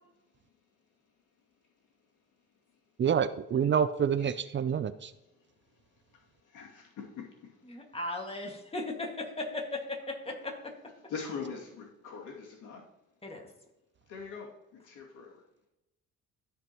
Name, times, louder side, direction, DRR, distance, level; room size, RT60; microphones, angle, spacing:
voice 1, 3.0-5.1, right 7 dB, 40° right, 13 dB, 0.5 m, -27 dB
voice 2, 6.1-7.9 11.1-12.8 14.1-15.4, left 5 dB, 85° left, -3 dB, 2.5 m, -43 dB
voice 3, 7.7-10.7 13.2-13.5, left 2 dB, 20° left, 1 dB, 1.9 m, -37 dB
14.0 x 5.2 x 3.0 m, 0.93 s
cardioid pair, 90°, 30 cm